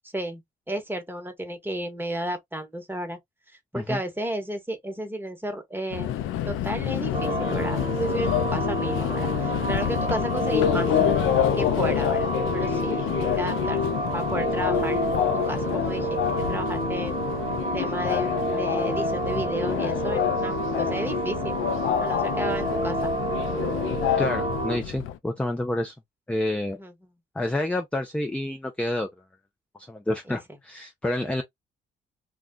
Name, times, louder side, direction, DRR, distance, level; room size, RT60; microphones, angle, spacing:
voice 1, 0.1-3.2 3.7-6.1 6.5-10.9 11.5-13.8 14.1-15.0 15.5-16.2 16.5-17.2 17.7-21.6 22.0-23.1 26.7-26.9 30.3-30.4, right 1 dB, 10° right, 1.2 m, -33 dB
Subway metro underground, 5.9-25.2, left 10 dB, 85° left, 0.5 m, -27 dB
sound 1, 7.1-24.8, right 2 dB, 30° right, 1.3 m, -29 dB
voice 2, 24.2-25.9 26.3-26.8 27.3-29.1 29.9-31.4, left 1 dB, 5° left, 0.5 m, -28 dB
2.4 x 2.3 x 3.7 m
cardioid pair, 90°, 20 cm